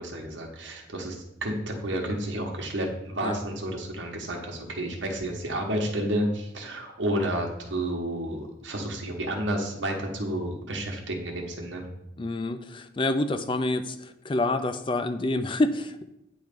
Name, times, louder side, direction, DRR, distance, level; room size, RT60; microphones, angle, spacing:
voice 1, 0.0-11.8, right 1 dB, 85° right, 0 dB, 1.1 m, -31 dB
voice 2, 12.2-13.9 14.3-16.0, left 2 dB, 25° left, 10 dB, 0.4 m, -27 dB
8.8 x 3.2 x 5.2 m, 0.83 s
head